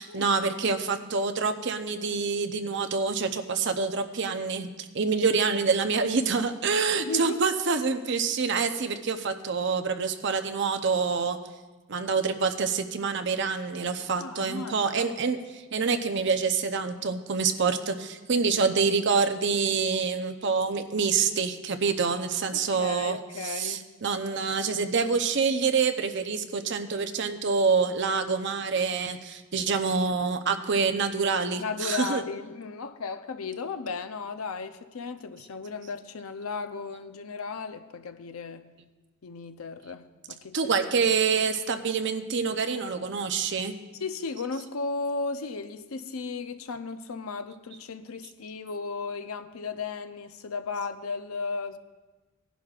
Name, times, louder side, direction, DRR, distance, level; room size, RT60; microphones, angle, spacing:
voice 1, 0.0-11.4 11.9-23.2 23.4-32.2 40.5-43.7, right 5 dB, 55° right, 0.7 m, -26 dB
voice 2, 7.0-7.4 14.2-15.1 22.5-23.9 31.6-38.7 39.2-40.7 41.0-41.1 43.9-51.8, left 4 dB, 90° left, 0.6 m, -35 dB
19.0 x 11.0 x 2.4 m
head